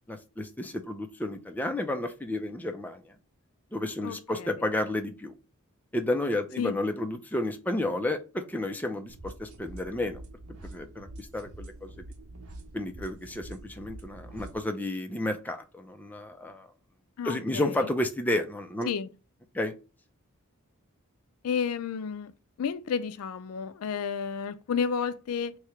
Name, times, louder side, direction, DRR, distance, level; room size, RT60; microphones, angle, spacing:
voice 1, 0.1-3.1 3.7-5.3 5.9-10.2 10.6-12.0 12.7-16.7 17.2-18.9 19.5-19.7, left 1 dB, 10° left, 0.4 m, -31 dB
sound 1, 9.1-14.6, right 1 dB, 75° right, 0.9 m, -45 dB
voice 2, 17.2-17.6 18.9-19.1 21.4-22.3 22.6-25.6, left 6 dB, 70° left, 0.4 m, -31 dB
3.1 x 2.8 x 4.5 m
head